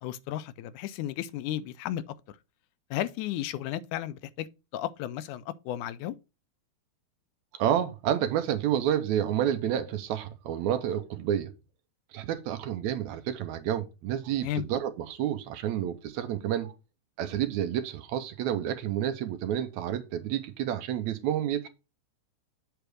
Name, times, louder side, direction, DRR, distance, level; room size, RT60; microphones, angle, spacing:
voice 1, 0.0-2.0 2.9-4.5 4.7-6.2 14.4-14.7, left 12 dB, 85° left, 2.1 m, -33 dB
voice 2, 7.5-11.5 12.1-16.7 17.2-21.7, right 10 dB, 80° right, 2.0 m, -29 dB
8.0 x 3.4 x 6.1 m
omnidirectional pair, 3.4 m